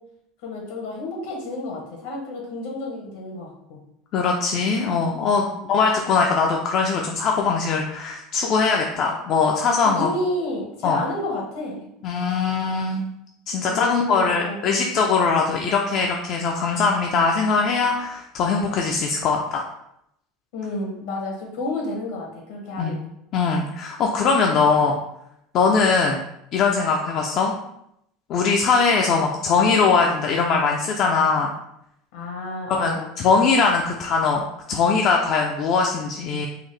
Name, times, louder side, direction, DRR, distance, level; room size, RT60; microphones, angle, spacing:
voice 1, 0.4-3.8 5.5-5.6 9.8-11.9 13.6-14.8 20.5-23.0 29.5-29.6 32.1-33.1, left 2 dB, 75° left, -1 dB, 1.1 m, -31 dB
voice 2, 4.1-10.1 10.8-11.0 12.0-13.0 13.5-19.6 22.8-23.0 23.3-25.0 25.5-26.2 26.5-27.5 28.3-31.5 32.8-36.5, left 4 dB, 50° left, 0 dB, 0.4 m, -21 dB
3.7 x 2.0 x 3.2 m, 0.78 s
supercardioid pair, 120°, 0 cm